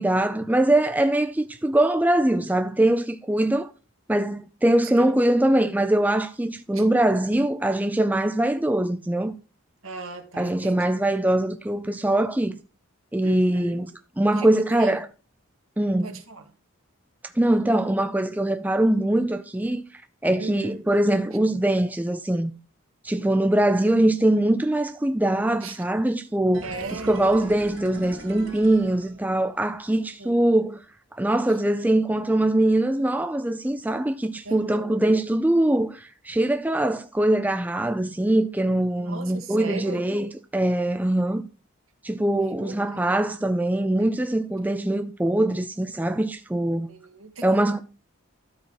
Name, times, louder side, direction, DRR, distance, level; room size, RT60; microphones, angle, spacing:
voice 1, 0.0-3.7 4.1-9.3 10.4-12.6 13.1-13.9 14.2-15.1 15.8-16.2 17.4-19.8 20.2-22.5 23.0-30.8 31.1-41.4 42.0-46.9 47.4-47.8, right 1 dB, 10° right, 0.4 m, -22 dB
voice 2, 9.8-10.9 13.2-13.8 14.4-15.0 16.0-16.4 20.4-20.8 25.6-25.8 26.6-27.1 30.0-30.4 34.4-35.0 39.0-40.0 42.3-43.1 46.9-47.5, right 3 dB, 80° right, 1.5 m, -37 dB
sound 1, 26.5-29.7 30.0-30.1, right 1 dB, 60° right, 2.0 m, -41 dB
12.5 x 4.4 x 4.5 m
head